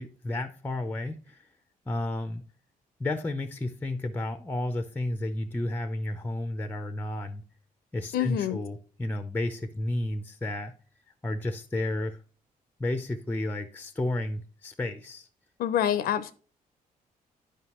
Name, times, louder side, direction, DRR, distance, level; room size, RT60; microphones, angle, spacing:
voice 1, 0.0-1.5 1.9-2.4 3.0-7.4 7.9-10.7 11.2-12.2 12.8-15.3, left 2 dB, 10° left, 0.5 m, -32 dB
voice 2, 8.1-8.6 15.6-16.3, left 10 dB, 90° left, 0.5 m, -26 dB
9.7 x 5.0 x 3.0 m
cardioid pair, 100°, 15 cm